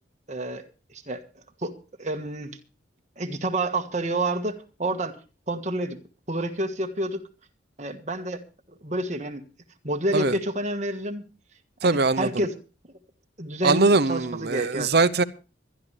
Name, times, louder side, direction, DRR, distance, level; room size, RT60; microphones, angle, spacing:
voice 1, 0.3-0.6 0.9-1.2 1.6-1.7 2.0-2.5 3.2-5.2 5.5-6.0 6.3-7.2 7.8-8.4 8.8-9.4 9.8-11.2 11.8-12.5 13.4-14.9, right 1 dB, 35° right, 1.4 m, -28 dB
voice 2, 11.8-12.4 13.6-15.2, right 3 dB, 55° right, 0.7 m, -21 dB
24.5 x 11.0 x 3.3 m
head